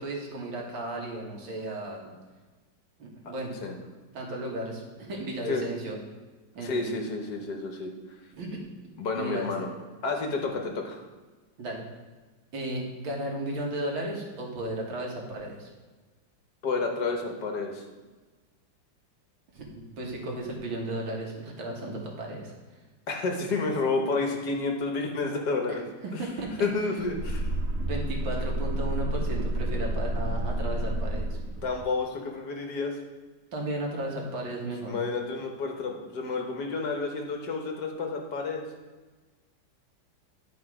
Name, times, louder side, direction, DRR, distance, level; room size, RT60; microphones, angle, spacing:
voice 1, 0.0-2.1 3.0-3.5 4.1-6.0 6.6-6.9 8.4-8.6 9.2-9.5 11.6-11.8 12.5-15.7 19.5-22.5 26.0-26.7 27.0-27.1 27.8-31.4 33.5-34.9, right 1 dB, 85° right, -1 dB, 2.3 m, -34 dB
voice 2, 6.6-7.9 9.0-9.7 10.0-11.0 16.6-17.8 23.1-25.8 26.1-26.2 26.6-27.4 31.6-33.0 34.9-38.6, left 3 dB, 60° left, 2 dB, 1.6 m, -30 dB
sound 1, 27.0-31.9, right 1 dB, 60° right, 0.9 m, -30 dB
11.0 x 4.8 x 4.8 m, 1.3 s
omnidirectional pair, 2.1 m